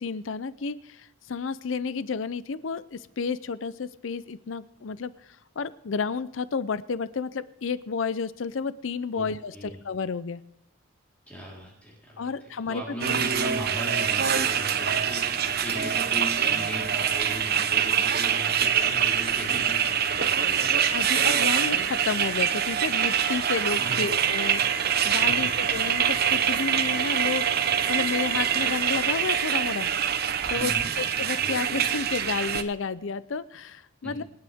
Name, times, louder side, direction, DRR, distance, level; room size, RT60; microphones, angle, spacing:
voice 1, 0.0-10.4 12.2-12.8 20.9-29.9 30.5-34.2, left 5 dB, 70° left, 16 dB, 0.5 m, -31 dB
voice 2, 9.1-9.8 11.3-20.8 23.8-24.1 25.3-25.5 30.5-30.9 34.0-34.2, equal, 5° left, -5 dB, 3.9 m, -37 dB
sound 1, 13.0-32.6, right 8 dB, 50° right, 0.9 m, -25 dB
25.5 x 9.6 x 3.6 m, 0.82 s
head